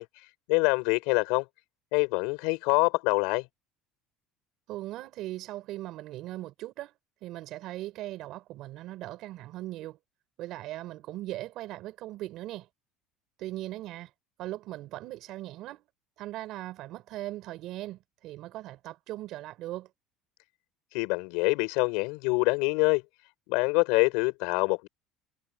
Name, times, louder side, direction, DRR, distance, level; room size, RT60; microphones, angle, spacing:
voice 1, 0.0-1.5 1.9-3.4 20.9-23.0 23.5-24.9, left 29 dB, 75° left, 6.2 m, -25 dB
voice 2, 4.7-6.9 7.2-10.0 10.4-12.7 13.4-14.1 14.4-15.8 16.2-19.9, right 15 dB, 50° right, 5.5 m, -39 dB
cardioid pair, 165°, 0 cm